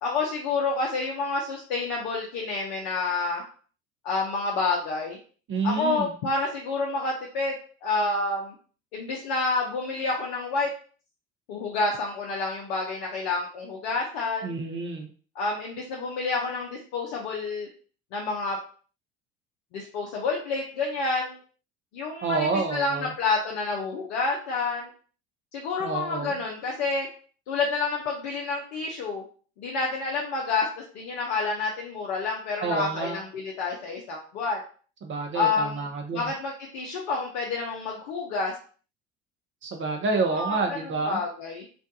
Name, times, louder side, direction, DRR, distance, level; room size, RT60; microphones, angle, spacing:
voice 1, 0.0-3.4 4.0-5.2 5.6-7.5 7.8-8.5 8.9-10.7 11.5-14.6 15.4-17.7 18.1-18.6 19.7-21.4 21.9-24.9 25.5-27.1 27.5-29.2 29.6-34.6 35.3-35.9 36.1-38.6 40.3-40.8 41.1-41.7, left 3 dB, 70° left, -2 dB, 0.6 m, -29 dB
voice 2, 5.5-6.1 14.4-15.1 22.2-23.1 25.8-26.3 32.6-33.2 35.0-36.3 39.6-41.2, right 4 dB, 35° right, 3 dB, 0.5 m, -28 dB
2.5 x 2.2 x 2.6 m, 0.42 s
hypercardioid pair, 65°, 35 cm